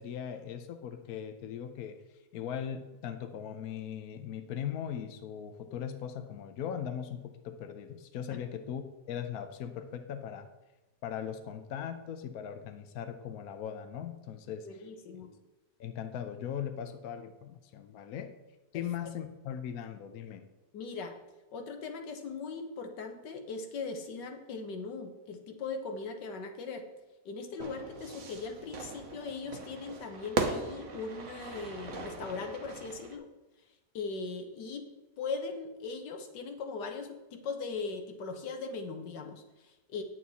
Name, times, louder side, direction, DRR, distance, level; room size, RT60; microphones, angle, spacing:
voice 1, 0.0-2.0 2.3-10.5 11.0-14.8 15.8-18.3 18.7-20.4, left 8 dB, 65° left, 7 dB, 1.1 m, -39 dB
voice 2, 14.6-15.3 18.7-18.9 20.7-21.2 21.5-26.8 27.3-33.3 33.9-34.9 35.2-40.0, left 4 dB, 85° left, 5 dB, 1.7 m, -39 dB
Fire / Fireworks, 27.6-33.2, right 4 dB, 50° right, 1.2 m, -38 dB
9.2 x 8.4 x 4.1 m, 1.1 s
omnidirectional pair, 1.8 m